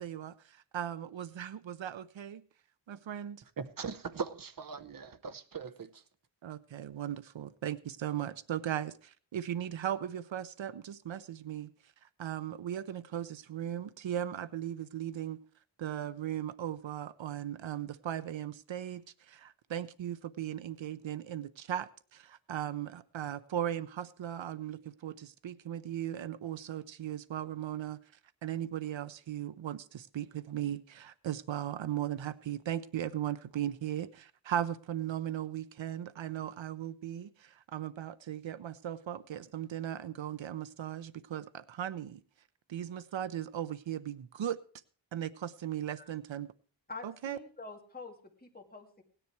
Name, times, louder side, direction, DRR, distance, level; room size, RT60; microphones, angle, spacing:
voice 1, 0.0-2.4 2.9-3.4 6.4-11.7 12.2-15.4 15.8-28.0 28.4-42.2 42.7-44.6 45.1-46.5 47.0-47.4, right 10 dB, 80° right, 0.7 m, -37 dB
voice 2, 3.6-6.0, right 5 dB, 45° right, 0.9 m, -40 dB
voice 3, 46.9-49.0, left 3 dB, 20° left, 2.1 m, -47 dB
17.0 x 10.0 x 4.6 m
wide cardioid pair, 105°, 45 cm